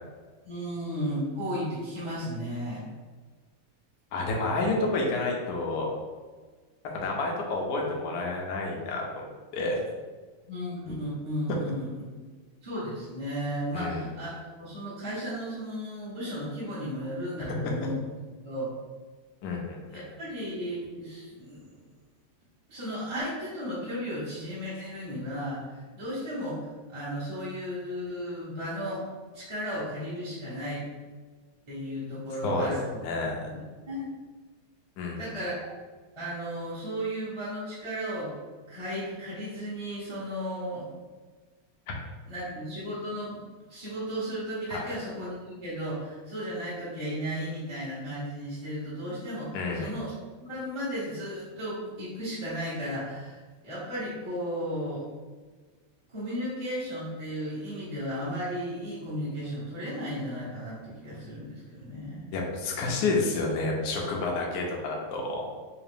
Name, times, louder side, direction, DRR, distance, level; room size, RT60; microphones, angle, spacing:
voice 1, 0.4-2.9 10.5-11.9 12.6-18.0 18.4-18.7 19.9-21.7 22.7-25.6 25.9-29.0 29.3-30.8 31.7-33.0 33.5-34.1 35.2-35.5 36.1-38.3 38.7-40.9 42.3-43.4 43.7-50.1 50.4-55.1 56.1-62.4, equal, 20° right, -11 dB, 0.8 m, -34 dB
voice 2, 4.1-5.9 6.9-9.3 9.5-9.8 13.7-14.0 19.4-20.0 32.4-32.7 33.0-33.5 35.0-35.4 41.9-42.0 44.7-44.9 49.5-49.9 62.3-65.5, left 3 dB, 65° left, -1 dB, 1.1 m, -29 dB
3.7 x 2.8 x 3.4 m, 1.4 s
omnidirectional pair, 2.3 m